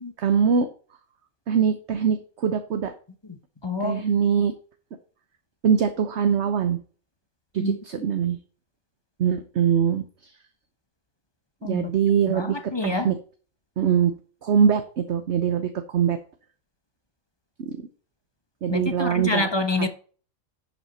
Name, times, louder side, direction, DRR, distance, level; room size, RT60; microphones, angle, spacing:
voice 1, 0.2-0.7 1.5-2.9 3.8-4.5 5.6-6.8 7.5-8.4 9.2-10.4 11.6-13.2 13.8-14.1 14.4-16.2 17.6-17.8 18.6-19.5, right 7 dB, 55° right, 1.1 m, -23 dB
voice 2, 3.6-4.0 7.6-7.8 11.6-11.9 12.3-13.1 18.7-19.9, left 3 dB, 25° left, 0.7 m, -27 dB
11.0 x 5.7 x 4.2 m
omnidirectional pair, 1.5 m